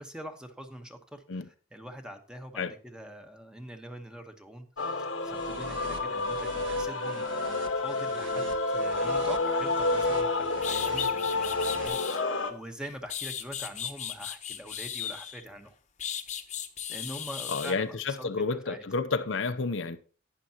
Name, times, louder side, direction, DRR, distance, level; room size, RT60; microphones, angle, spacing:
voice 1, 0.0-7.4 7.8-15.7 16.9-18.8, equal, 5° right, 1.2 m, -44 dB
Male singing / Female singing / Musical instrument, 4.8-12.5, left 2 dB, 90° left, 1.4 m, -29 dB
sound 1, 5.3-11.9, right 3 dB, 90° right, 1.5 m, -45 dB
sound 2, 10.2-10.3 10.6-12.2 12.8-15.5 16.0-17.8, left 9 dB, 40° left, 1.0 m, -36 dB
voice 2, 17.5-20.0, left 4 dB, 75° left, 0.7 m, -30 dB
11.5 x 9.9 x 2.9 m
head